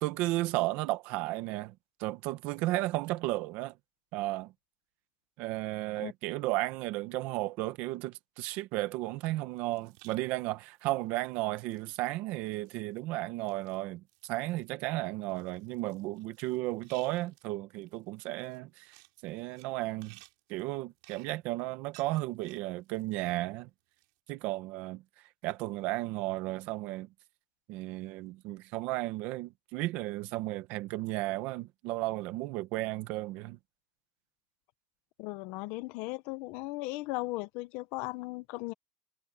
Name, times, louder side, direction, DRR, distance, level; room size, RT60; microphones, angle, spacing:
voice 1, 0.0-1.7 2.0-3.7 4.1-4.5 5.4-20.2 20.5-23.7 24.3-25.0 25.4-27.1 27.7-33.6, right 18 dB, 50° right, 1.1 m, -34 dB
sound 1, 9.6-10.2 10.5-12.1 12.4-13.0 13.4-13.8 14.1-14.7 15.2-17.5 17.8-19.7 20.0-23.4 23.7-24.2, right 28 dB, 70° right, 6.5 m, -60 dB
voice 2, 35.2-38.7, left 21 dB, 50° left, 0.7 m, -37 dB
cardioid pair, 175°, 4 cm